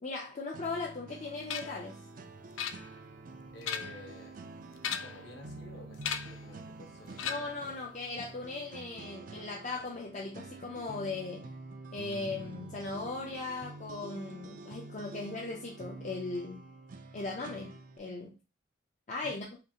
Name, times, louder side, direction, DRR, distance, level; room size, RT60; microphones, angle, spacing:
voice 1, 0.0-2.0 7.2-11.5 11.9-16.7 17.1-18.4 19.1-19.5, left 3 dB, 40° left, 0.5 m, -38 dB
sound 1, 0.5-18.0, right 3 dB, 45° right, 0.4 m, -48 dB
sound 2, 1.5-1.8 2.6-3.2 3.5-4.1 4.8-5.3 6.0-6.4 7.2-7.7, left 8 dB, 90° left, 0.4 m, -37 dB
voice 2, 3.5-4.4 5.0-7.8 19.2-19.4, left 1 dB, 60° left, 1.0 m, -51 dB
5.0 x 2.5 x 2.8 m
head